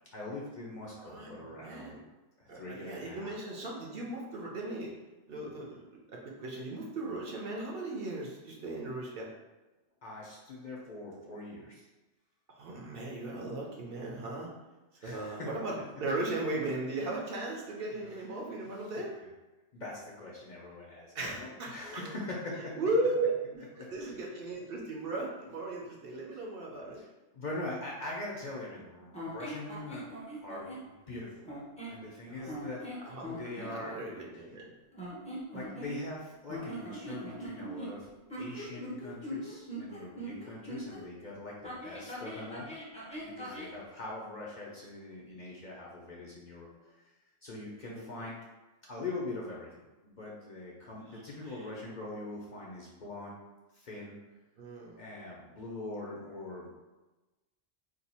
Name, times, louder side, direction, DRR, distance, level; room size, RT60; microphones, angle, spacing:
voice 1, 0.1-2.0 2.4-3.3 10.0-11.8 15.0-15.5 17.9-18.0 18.9-19.0 19.7-22.8 23.8-23.9 26.9-27.1 27.3-30.0 30.4-30.7 31.0-31.5 31.9-32.9 33.2-34.0 35.5-38.1 38.4-42.7 43.2-47.1 47.4-48.4 48.9-53.4 53.7-54.2 55.0-56.7, left 2 dB, 50° left, -4 dB, 0.6 m, -42 dB
voice 2, 1.0-2.0 2.5-4.9 5.3-9.3 12.5-14.5 15.0-19.2 21.1-22.0 22.6-27.0 32.3-32.5 33.0-33.4 33.7-34.7 47.9-48.2 51.1-51.7 54.6-55.0, right 2 dB, 60° right, -2 dB, 0.8 m, -37 dB
sound 1, 29.1-30.9 31.4-32.0 32.5-33.7 34.9-36.2 36.5-41.0 41.6-43.8, right 1 dB, 10° left, 0.5 m, -41 dB
2.7 x 2.3 x 4.1 m, 1.1 s
omnidirectional pair, 1.2 m